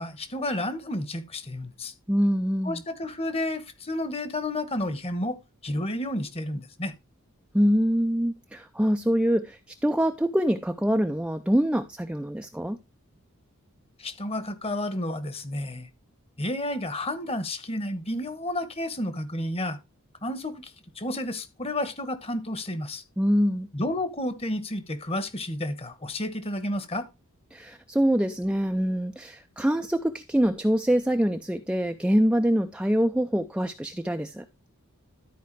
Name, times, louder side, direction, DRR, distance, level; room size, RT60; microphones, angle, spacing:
voice 1, 0.0-1.9 2.6-5.4 5.6-6.9 14.0-15.9 16.4-19.8 20.2-23.0 23.7-27.0, left 1 dB, 25° left, 1.2 m, -31 dB
voice 2, 2.1-2.8 7.5-12.8 23.2-23.7 27.5-34.4, equal, 5° right, 0.4 m, -24 dB
12.5 x 4.7 x 4.6 m
head